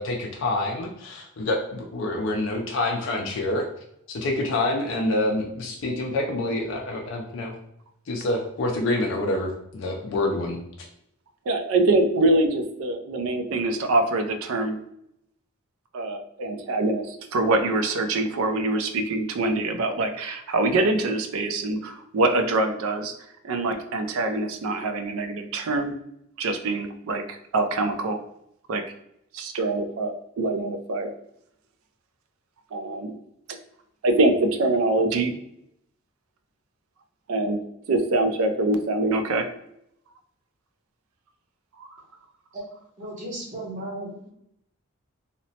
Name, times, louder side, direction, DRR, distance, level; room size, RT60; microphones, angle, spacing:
voice 1, 0.0-3.6 4.1-7.5 8.1-10.9, left 2 dB, 60° left, 1 dB, 0.4 m, -27 dB
voice 2, 11.5-14.8 15.9-23.1 23.4-25.9 26.4-28.2 28.7-28.9 29.3-31.1 32.7-33.1 34.0-35.3 37.3-37.6 37.9-39.5 41.8-41.9, right 2 dB, 75° right, 6 dB, 0.4 m, -24 dB
voice 3, 43.0-44.3, right 1 dB, 35° right, -4 dB, 0.8 m, -35 dB
2.8 x 2.0 x 2.7 m, 0.77 s
head